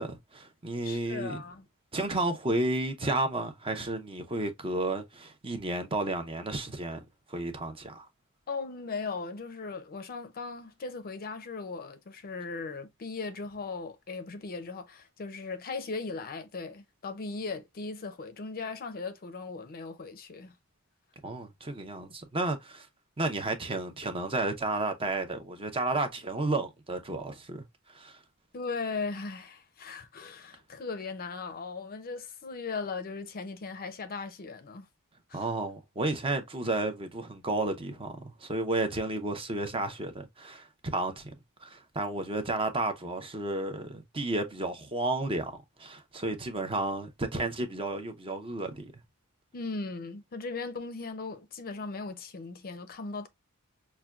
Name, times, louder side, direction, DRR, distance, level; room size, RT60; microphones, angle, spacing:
voice 1, 0.0-1.4 1.9-8.1 21.2-22.9 23.2-27.6 27.9-28.2 35.3-41.3 41.6-48.8, right 2 dB, 25° right, 0.6 m, -32 dB
voice 2, 0.8-1.7 8.5-20.6 28.5-34.9 35.3-35.5 49.5-53.3, left 4 dB, 40° left, 0.5 m, -38 dB
5.6 x 2.2 x 2.3 m
head